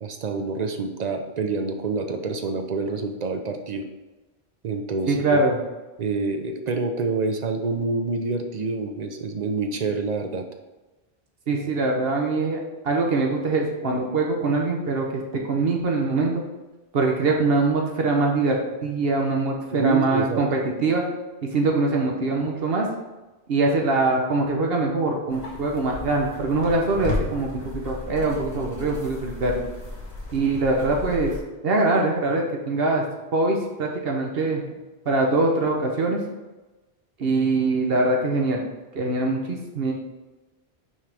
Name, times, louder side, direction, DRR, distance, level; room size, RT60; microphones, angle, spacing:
voice 1, 0.0-3.9 4.6-5.4 6.0-10.4 19.7-20.4, right 3 dB, 50° right, 6 dB, 0.6 m, -27 dB
voice 2, 5.1-5.6 11.5-15.2 15.5-16.4 16.9-21.0 21.5-22.9 23.5-29.6 30.3-31.3 31.6-33.0 33.3-34.6 35.1-36.2 37.2-38.6 38.9-39.9, right 3 dB, 65° right, 1 dB, 1.0 m, -23 dB
sound 1, 25.3-31.4, left 2 dB, 40° left, 1.6 m, -34 dB
5.9 x 4.7 x 3.4 m, 1.1 s
omnidirectional pair, 1.1 m